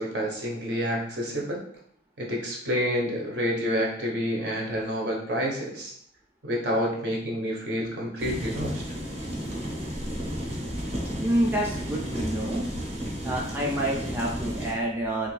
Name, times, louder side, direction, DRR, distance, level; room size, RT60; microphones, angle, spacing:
voice 1, 0.0-1.6 2.2-5.9 6.4-8.8, equal, 65° right, -2 dB, 0.9 m, -28 dB
sound 1, 8.2-14.7, equal, 35° right, 0.7 m, -33 dB
voice 2, 11.2-12.7 13.2-15.3, right 1 dB, 10° right, -4 dB, 0.5 m, -28 dB
3.1 x 2.5 x 3.2 m, 0.65 s
head